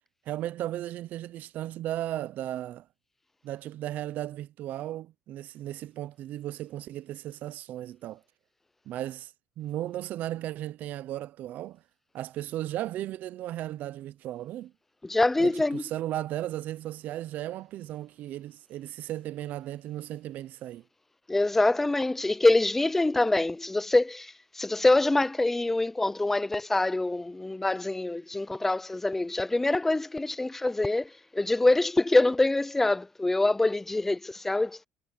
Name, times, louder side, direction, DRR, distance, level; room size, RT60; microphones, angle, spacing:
voice 1, 0.3-2.9 3.4-8.2 8.9-9.3 9.6-11.8 12.1-14.7 15.4-20.8, right 13 dB, 55° right, 0.6 m, -35 dB
voice 2, 15.0-15.8 21.3-34.9, left 2 dB, 10° left, 0.4 m, -25 dB
cardioid pair, 130°, 3 cm